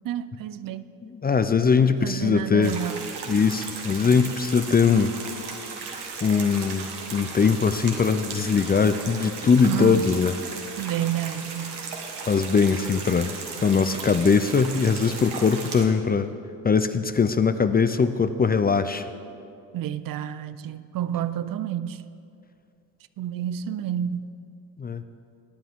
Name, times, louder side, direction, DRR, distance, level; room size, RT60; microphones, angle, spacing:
voice 1, 0.0-0.9 1.9-3.1 9.6-10.1 10.8-11.8 19.7-22.0 23.2-24.3, right 11 dB, 55° right, 0.6 m, -30 dB
voice 2, 1.0-2.8 3.3-5.1 6.2-10.3 12.3-13.3 13.6-16.3 16.6-19.0 24.8-25.0, left 5 dB, 25° left, 0.5 m, -21 dB
sound 1, 2.6-15.8, right 5 dB, 70° right, 1.8 m, -36 dB
18.5 x 9.2 x 3.6 m
supercardioid pair, 70°, 41 cm